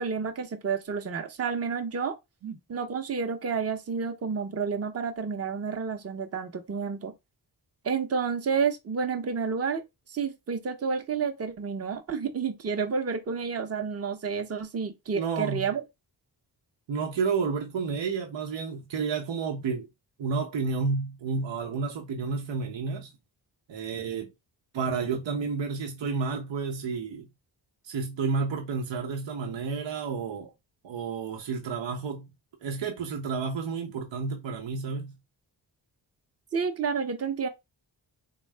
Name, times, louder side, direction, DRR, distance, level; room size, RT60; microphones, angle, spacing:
voice 1, 0.0-2.2 2.7-7.1 7.8-9.8 10.1-15.8 36.5-37.5, right 5 dB, 35° right, 0.7 m, -30 dB
voice 2, 15.1-15.7 16.9-19.9 20.2-23.1 23.7-24.3 24.7-27.3 27.8-30.5 30.8-32.3 32.6-35.1, right 5 dB, 80° right, 0.8 m, -31 dB
3.5 x 2.3 x 3.2 m
cardioid pair, 60°, 44 cm